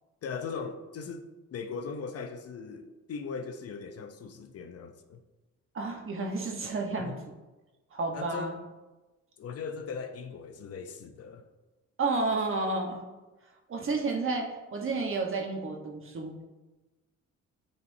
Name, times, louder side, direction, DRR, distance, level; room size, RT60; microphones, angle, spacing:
voice 1, 0.2-5.2 6.9-7.2 8.1-8.6 9.4-11.4, left 5 dB, 55° left, 0.6 m, -39 dB
voice 2, 5.7-7.1 7.9-8.5 12.0-13.0 13.7-16.4, right 3 dB, 45° right, 1.1 m, -31 dB
9.4 x 4.4 x 2.7 m
cardioid pair, 90°, 30 cm